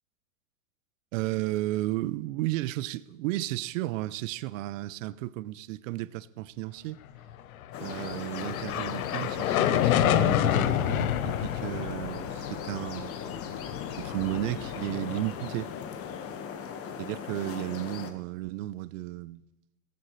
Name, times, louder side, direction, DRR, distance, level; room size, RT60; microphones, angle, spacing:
voice 1, 1.1-7.0 7.8-13.4 14.0-15.7 17.0-19.4, right 16 dB, 65° right, 0.6 m, -33 dB
sound 1, 7.6-16.0, left 11 dB, 85° left, 1.0 m, -29 dB
sound 2, 7.7-18.1, left 7 dB, 35° left, 1.5 m, -39 dB
16.5 x 15.0 x 3.2 m
supercardioid pair, 125°, 41 cm